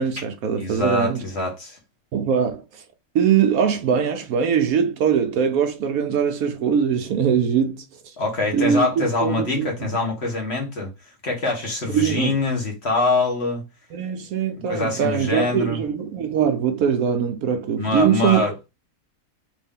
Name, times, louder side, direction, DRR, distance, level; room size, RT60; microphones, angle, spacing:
voice 1, 0.0-1.2 2.1-2.8 3.1-8.1 8.5-9.7 11.9-12.4 13.9-18.5, right 7 dB, 70° right, 1.0 m, -22 dB
voice 2, 0.6-1.8 8.2-10.9 11.2-13.6 14.7-15.8 17.8-18.5, left 3 dB, 45° left, 1.3 m, -24 dB
3.4 x 2.5 x 3.6 m
omnidirectional pair, 1.7 m